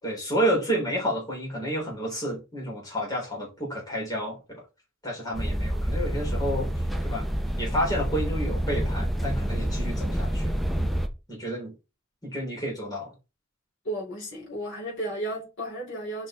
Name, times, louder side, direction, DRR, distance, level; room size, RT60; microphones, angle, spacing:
voice 1, 0.0-4.6 5.0-6.7 7.0-7.3 7.6-10.6 11.3-11.7 12.2-13.1, equal, 20° left, 3.8 m, -30 dB
sound 1, 5.3-11.1, equal, ahead, 0.9 m, -28 dB
voice 2, 13.8-16.3, right 1 dB, 65° left, 3.9 m, -33 dB
6.9 x 5.3 x 3.8 m
head